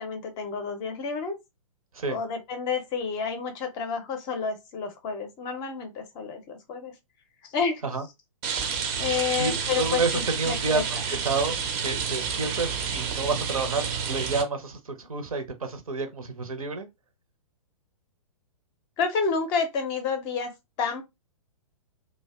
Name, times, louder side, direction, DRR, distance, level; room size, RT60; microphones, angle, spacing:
voice 1, 0.0-1.4 2.1-6.9 7.4-7.8 9.0-10.8 19.0-20.5 20.8-21.0, left 5 dB, 25° left, 0.5 m, -30 dB
Rain, 8.4-14.4, right 6 dB, 30° right, 0.5 m, -30 dB
voice 2, 9.4-11.5 11.8-16.9, right 4 dB, 75° right, 0.7 m, -29 dB
2.5 x 2.1 x 2.3 m
figure-of-eight pair, 115°, 18 cm